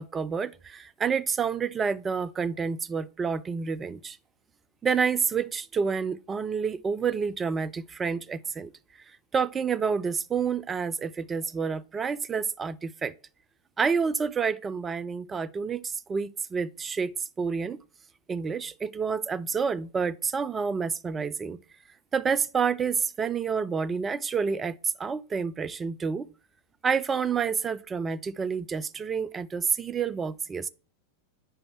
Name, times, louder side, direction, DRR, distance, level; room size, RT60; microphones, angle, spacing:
voice 1, 0.0-4.2 4.8-8.7 9.3-13.1 13.8-17.1 17.4-17.8 18.3-21.6 22.1-26.3 26.8-30.7, right 6 dB, 20° right, 0.3 m, -29 dB
5.5 x 5.0 x 5.8 m
figure-of-eight pair, 90°, 0 cm